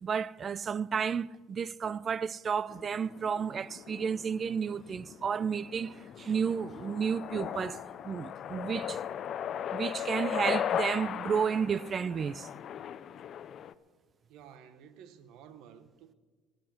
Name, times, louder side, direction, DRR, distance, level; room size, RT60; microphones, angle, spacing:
voice 1, 0.0-9.0 9.7-12.5, right 6 dB, 30° right, 0.3 m, -32 dB
sound 1, 2.7-13.7, left 9 dB, 45° left, 0.5 m, -38 dB
voice 2, 14.3-16.1, right 8 dB, 65° right, 0.9 m, -53 dB
21.5 x 8.1 x 5.9 m
cardioid pair, 125°, 0 cm